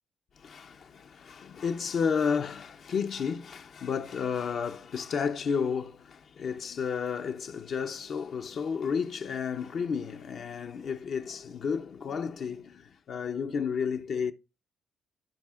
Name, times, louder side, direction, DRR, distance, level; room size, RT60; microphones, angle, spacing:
voice 1, 0.4-14.3, left 6 dB, 60° left, 0.6 m, -32 dB
14.5 x 4.8 x 2.4 m
cardioid pair, 90°, 0 cm